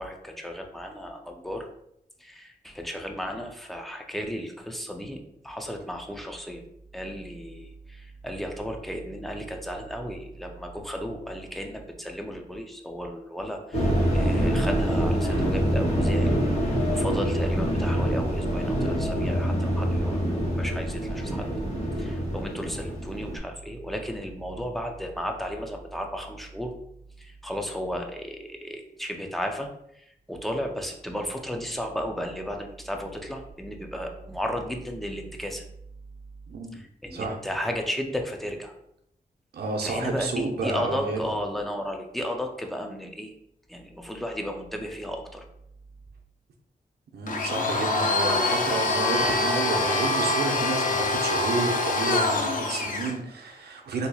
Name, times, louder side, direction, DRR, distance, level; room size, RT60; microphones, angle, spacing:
voice 1, 0.0-1.7 2.2-6.6 6.9-16.4 16.6-21.5 22.0-26.7 27.2-29.7 29.9-35.6 36.7-38.7 39.8-43.3 43.7-45.4 49.2-49.4, equal, ahead, 3 dB, 0.4 m, -34 dB
sound 1, 13.7-23.4, equal, 40° left, 1.1 m, -25 dB
voice 2, 39.5-41.2 47.1-54.1, right 3 dB, 90° right, 2 dB, 0.7 m, -30 dB
Domestic sounds home sounds, 47.3-53.2, left 2 dB, 55° left, 0.5 m, -25 dB
4.1 x 2.8 x 2.3 m, 0.75 s
wide cardioid pair, 165°, 16 cm